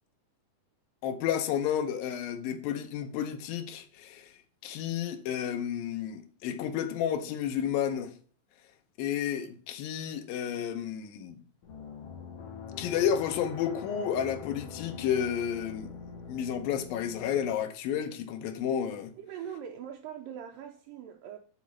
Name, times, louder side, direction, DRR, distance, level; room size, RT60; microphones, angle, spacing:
voice 1, 1.0-4.3 4.6-8.1 9.0-11.4 12.8-15.9 16.3-19.1, left 9 dB, 90° left, 2.6 m, -31 dB
sound 1, 11.6-17.6, left 5 dB, 60° left, 1.7 m, -44 dB
voice 2, 19.2-21.4, right 9 dB, 80° right, 2.3 m, -42 dB
8.3 x 4.1 x 5.9 m
omnidirectional pair, 4.0 m